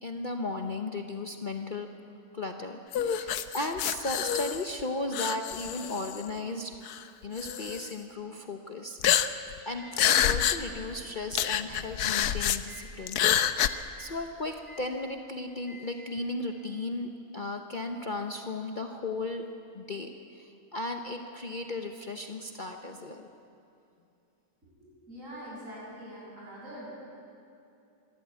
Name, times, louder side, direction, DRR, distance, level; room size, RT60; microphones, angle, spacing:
voice 1, 0.0-1.9 2.3-6.7 7.2-13.2 14.0-19.4 19.7-23.3, left 2 dB, 40° left, 4 dB, 0.9 m, -36 dB
sound 1, 2.9-4.8 5.1-6.2 6.9-7.0 7.4-7.9 9.0-9.6 9.9-10.6 10.9-11.0 11.3-12.6 13.1-13.7, left 10 dB, 90° left, 1.3 m, -27 dB
Microwave oven, 9.8-12.1 12.7-13.0 13.7-14.0 14.7-15.0 15.7-16.0, left 3 dB, ahead, 3.6 m, -53 dB
voice 2, 24.8-26.9, equal, 55° right, -6 dB, 7.8 m, -44 dB
25.0 x 12.5 x 9.6 m, 2.6 s
omnidirectional pair, 1.6 m